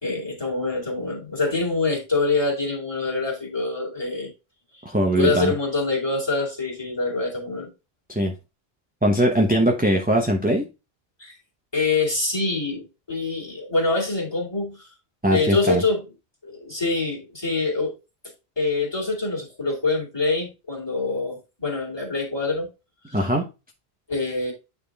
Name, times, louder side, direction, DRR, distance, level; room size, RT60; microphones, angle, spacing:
voice 1, 0.0-4.3 5.2-7.7 11.2-11.3 11.7-14.9 15.3-16.0 16.4-17.9 18.6-22.7 23.1-23.2 24.1-24.5, left 3 dB, 25° left, 2.5 m, -25 dB
voice 2, 4.8-5.5 8.1-8.3 9.0-10.7 15.2-15.8 23.1-23.5, right 1 dB, 10° right, 0.8 m, -21 dB
9.1 x 3.6 x 3.5 m
omnidirectional pair, 1.0 m